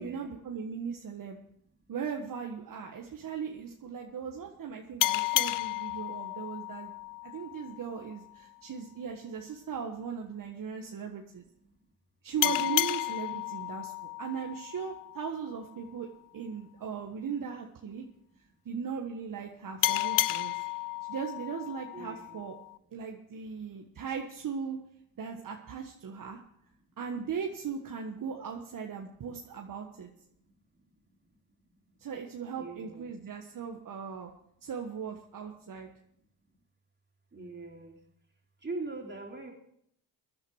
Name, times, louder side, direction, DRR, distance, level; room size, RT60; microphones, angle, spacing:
voice 1, 0.0-1.4 1.9-6.9 7.2-11.4 12.2-18.0 18.6-20.6 21.0-22.6 22.9-24.8 25.2-26.4 27.0-30.1 32.0-34.3 34.6-35.9, right 6 dB, 55° right, 2 dB, 1.5 m, -38 dB
sound 1, 5.0-8.2 12.4-15.6 19.8-22.8, left 16 dB, 55° left, 0.5 m, -32 dB
voice 2, 12.3-12.7 21.9-22.4 32.5-33.1 37.3-38.0 38.6-39.5, right 3 dB, 25° right, 1 dB, 3.6 m, -41 dB
16.0 x 10.5 x 4.8 m, 0.71 s
supercardioid pair, 60°, 39 cm